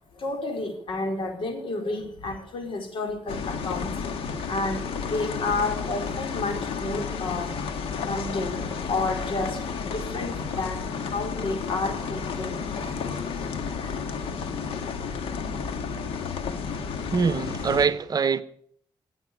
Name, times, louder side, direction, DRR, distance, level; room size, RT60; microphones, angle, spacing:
voice 1, 0.1-4.0 4.5-7.6 8.0-14.2, left 3 dB, 70° left, 4.1 m, -31 dB
sound 1, 3.3-17.9, left 5 dB, 90° left, 1.6 m, -32 dB
voice 2, 17.1-18.4, right 5 dB, 45° right, 0.9 m, -23 dB
14.5 x 8.5 x 8.8 m
cardioid pair, 95°, 9 cm